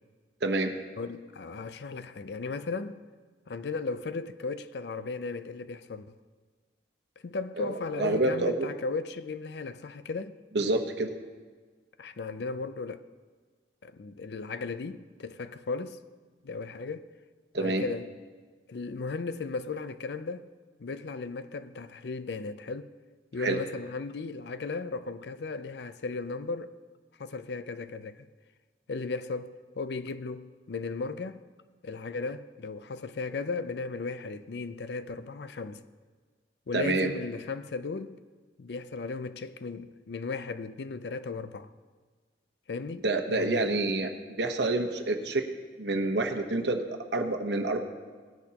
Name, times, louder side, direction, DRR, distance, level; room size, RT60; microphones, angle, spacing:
voice 1, 0.4-0.7 7.6-8.7 10.5-11.1 17.5-17.8 23.4-23.6 36.7-37.1 43.0-44.1 44.4-45.4 45.8-47.8, right 2 dB, 80° right, 1.1 m, -28 dB
voice 2, 1.0-3.0 3.5-6.2 7.2-10.4 12.0-13.0 13.8-16.0 16.4-17.0 17.5-18.1 18.7-20.5 20.8-22.9 23.3-26.7 27.2-28.3 28.9-31.4 31.8-35.8 36.7-38.2 38.6-41.7 42.7-43.0 43.3-43.8, left 4 dB, 70° left, 0.5 m, -36 dB
18.5 x 10.0 x 2.9 m
head